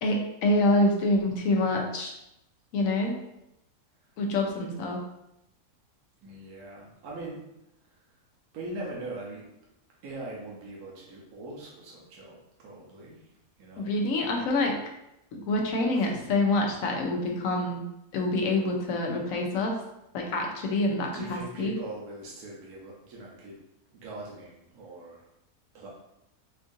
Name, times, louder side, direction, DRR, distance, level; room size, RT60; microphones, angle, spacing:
voice 1, 0.0-2.2 2.7-3.2 4.2-5.0 13.8-14.8 15.3-17.9 18.1-19.8 20.1-21.7, left 2 dB, 70° left, 1 dB, 0.9 m, -26 dB
voice 2, 6.2-7.5 7.9-8.0 8.5-9.5 10.0-13.2 13.6-13.9 14.2-14.4 15.9-16.2 21.1-23.6 23.9-25.3 25.7-25.9, right 2 dB, 80° right, -4 dB, 1.2 m, -41 dB
4.4 x 2.5 x 2.5 m, 0.84 s
omnidirectional pair, 1.6 m